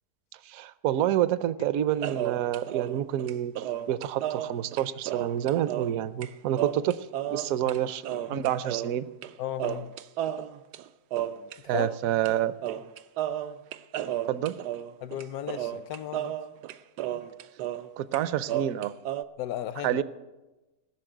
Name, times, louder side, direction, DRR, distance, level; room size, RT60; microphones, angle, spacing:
voice 1, 0.4-8.0 8.3-9.1 11.7-12.5 14.3-14.6 18.0-19.0 19.8-20.0, right 11 dB, 70° right, 1.0 m, -28 dB
sound 1, 2.0-6.0 6.2-6.3 6.6-7.8 8.0-9.3 9.6-12.0 12.2-12.4 12.6-17.9 18.1-19.2, right 11 dB, 90° right, 1.2 m, -33 dB
voice 2, 9.4-9.9 11.7-11.9 15.0-16.4 19.4-20.0, left 11 dB, 70° left, 1.1 m, -35 dB
18.0 x 6.6 x 9.0 m
omnidirectional pair, 1.7 m